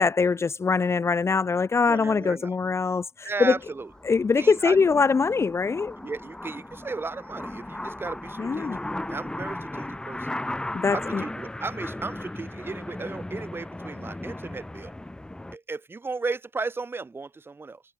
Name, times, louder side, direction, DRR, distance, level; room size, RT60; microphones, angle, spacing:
voice 1, 0.0-3.5 4.0-5.9 8.4-8.8 10.7-11.2, left 5 dB, 30° left, 1.8 m, -23 dB
voice 2, 1.8-2.5 3.2-3.9 4.3-5.1 6.0-8.8 9.1-10.3 10.9-14.9 15.5-17.8, right 3 dB, 25° right, 4.9 m, -35 dB
sound 1, 3.4-15.6, left 1 dB, 10° left, 1.9 m, -36 dB
hypercardioid pair, 65°, 9 cm